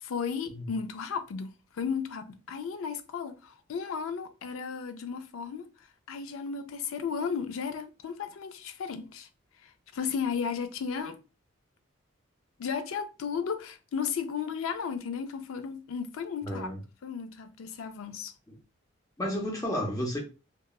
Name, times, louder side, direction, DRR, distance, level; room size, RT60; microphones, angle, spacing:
voice 1, 0.0-5.7 6.1-9.3 9.6-11.2 12.6-16.7 17.0-18.3, left 6 dB, 75° left, 0.4 m, -34 dB
voice 2, 16.4-16.8 18.5-18.6 19.2-20.2, equal, 15° left, 0.6 m, -32 dB
2.8 x 2.2 x 2.3 m
head